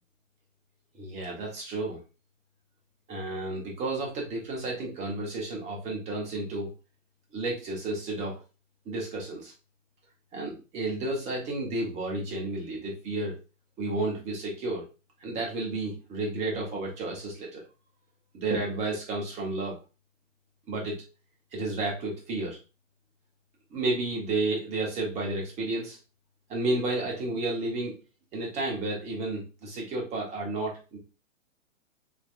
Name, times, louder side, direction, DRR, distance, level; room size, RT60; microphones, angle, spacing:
voice 1, 0.9-2.0 3.1-6.7 7.3-8.4 8.9-9.5 10.3-13.4 13.8-14.9 15.2-17.6 18.3-19.8 20.7-21.0 21.5-22.6 23.7-26.0 26.5-28.0 28.3-31.0, right 2 dB, 15° right, -2 dB, 1.1 m, -31 dB
3.4 x 3.0 x 2.5 m, 0.30 s
figure-of-eight pair, 120°, 39 cm